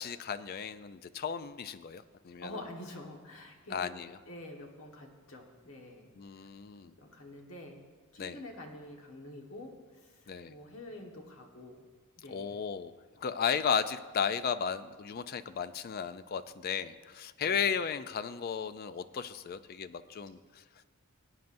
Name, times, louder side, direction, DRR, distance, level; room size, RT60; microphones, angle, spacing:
voice 1, 0.0-2.5 3.7-4.2 6.2-6.9 8.2-8.4 10.3-10.5 12.3-12.9 13.2-20.8, left 7 dB, 45° left, 13 dB, 0.4 m, -35 dB
voice 2, 2.4-4.0 4.3-6.5 7.0-7.8 8.1-11.8 12.2-12.6 17.4-17.6, left 1 dB, 65° left, 1 dB, 1.4 m, -47 dB
18.5 x 9.0 x 2.6 m, 1.5 s
head